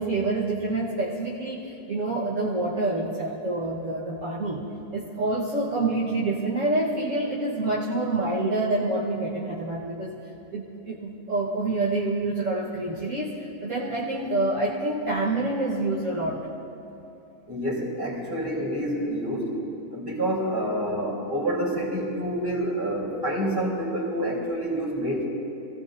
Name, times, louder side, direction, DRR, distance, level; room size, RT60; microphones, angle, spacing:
voice 1, 0.0-4.6 4.9-10.2 10.5-16.4, right 2 dB, 55° right, -6 dB, 1.7 m, -27 dB
voice 2, 17.5-19.6 19.9-25.2, right 1 dB, 15° right, -5 dB, 3.8 m, -28 dB
27.5 x 16.0 x 2.7 m, 2.8 s
omnidirectional pair, 1.7 m